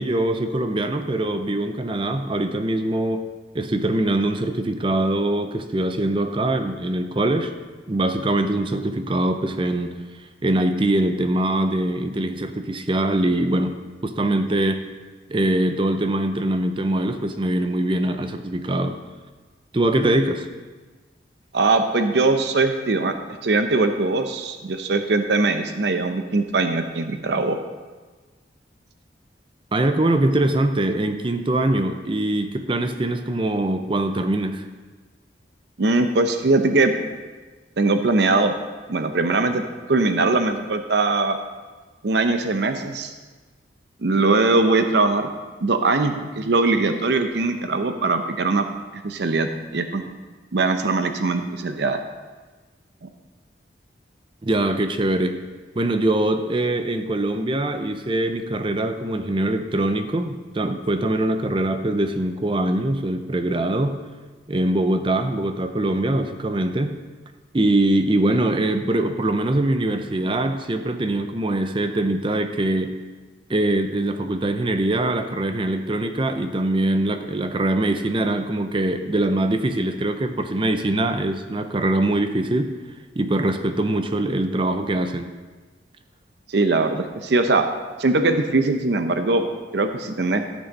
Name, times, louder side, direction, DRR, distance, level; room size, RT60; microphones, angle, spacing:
voice 1, 0.0-3.3 3.5-7.5 7.9-9.9 10.4-13.8 14.0-14.9 15.3-19.0 19.7-20.5 29.7-34.6 54.4-55.4 55.7-64.0 64.5-67.0 67.5-73.0 73.5-82.7 83.2-85.3, right 1 dB, 25° right, 8 dB, 0.5 m, -23 dB
voice 2, 21.5-23.1 23.4-27.6 35.8-36.9 37.8-38.5 38.9-39.6 39.9-41.4 42.0-43.1 44.0-45.3 45.6-48.6 49.0-50.0 50.5-52.0 86.5-87.7 88.0-89.4 89.7-90.4, right 3 dB, 65° right, 7 dB, 0.7 m, -21 dB
14.0 x 6.3 x 4.1 m, 1.3 s
head